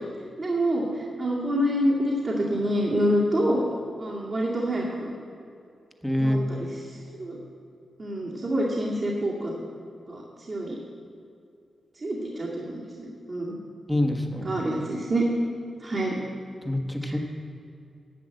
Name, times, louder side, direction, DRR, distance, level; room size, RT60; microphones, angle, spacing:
voice 1, 0.4-3.6 4.0-5.1 6.2-6.6 7.2-7.4 8.0-9.5 10.1-10.2 10.5-10.8 12.0-13.5 14.4-15.3 15.8-16.2 17.0-17.2, equal, 45° right, -5 dB, 2.2 m, -27 dB
voice 2, 6.0-6.4 13.9-14.5 16.6-17.2, left 1 dB, 5° left, 3 dB, 1.3 m, -25 dB
11.5 x 7.2 x 7.8 m, 2.5 s
cardioid pair, 80°, 0 cm